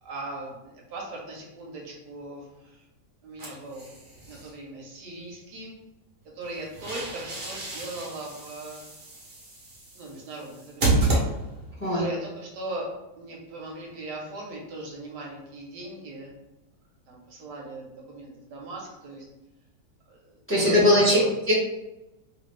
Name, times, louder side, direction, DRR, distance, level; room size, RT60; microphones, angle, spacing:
voice 1, 0.0-2.8 3.2-3.9 4.3-5.8 6.3-8.8 9.9-11.1 11.9-12.9 13.2-16.4 17.1-19.2 20.1-20.4 20.6-21.3, right 2 dB, 75° right, -2 dB, 1.3 m, -39 dB
sound 1, 3.4-4.5 6.4-11.8, right 2 dB, 45° right, 0.9 m, -30 dB
voice 2, 20.5-21.2 21.5-21.6, left 1 dB, 10° left, -7 dB, 0.9 m, -19 dB
3.1 x 2.5 x 3.1 m, 0.96 s
omnidirectional pair, 1.9 m